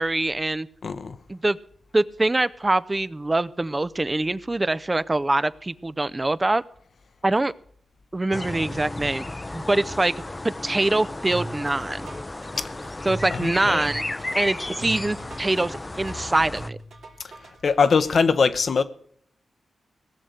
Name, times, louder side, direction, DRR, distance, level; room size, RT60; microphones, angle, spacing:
voice 1, 0.0-0.7 1.3-1.6 1.9-6.6 7.2-7.5 8.1-9.3 9.5-10.2 10.4-12.1 13.0-14.0 14.3-16.8, right 2 dB, 30° right, 0.5 m, -24 dB
voice 2, 0.8-1.2 12.6-12.7 13.3-13.9 17.6-18.8, left 5 dB, 65° left, 0.8 m, -22 dB
sound 1, 8.3-16.7, left 2 dB, 25° left, 0.6 m, -34 dB
sound 2, 11.3-18.1, right 2 dB, 80° right, 2.7 m, -39 dB
17.5 x 6.4 x 8.1 m
supercardioid pair, 45°, 0 cm